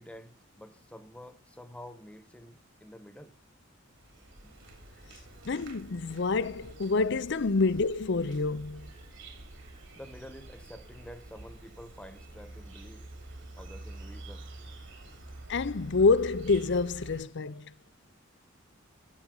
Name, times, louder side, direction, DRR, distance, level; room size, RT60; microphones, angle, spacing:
voice 1, 0.0-3.3 4.4-4.5 5.2-5.5 9.9-13.0 13.6-14.4, equal, 5° left, 1.2 m, -49 dB
Insect, 4.0-17.2, right 2 dB, 65° right, 3.3 m, -47 dB
voice 2, 5.4-8.9 15.5-17.7, left 4 dB, 60° left, 0.6 m, -27 dB
15.0 x 8.5 x 3.9 m
head